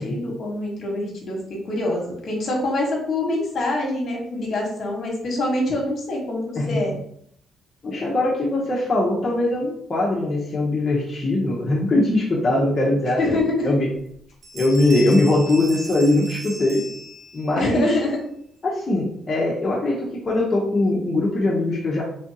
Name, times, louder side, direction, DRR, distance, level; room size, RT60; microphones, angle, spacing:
voice 1, 0.0-1.4 1.6-6.9 13.2-13.7 17.6-18.2, left 2 dB, 55° left, -1 dB, 1.3 m, -25 dB
voice 2, 7.8-13.9 14.5-16.8 17.3-18.0 18.6-22.0, left 2 dB, 30° left, -5 dB, 0.9 m, -21 dB
Bell, 14.0-14.2 14.4-17.6, equal, 55° right, 0.8 m, -37 dB
3.5 x 3.4 x 2.8 m, 0.68 s
cardioid pair, 90°, 0 cm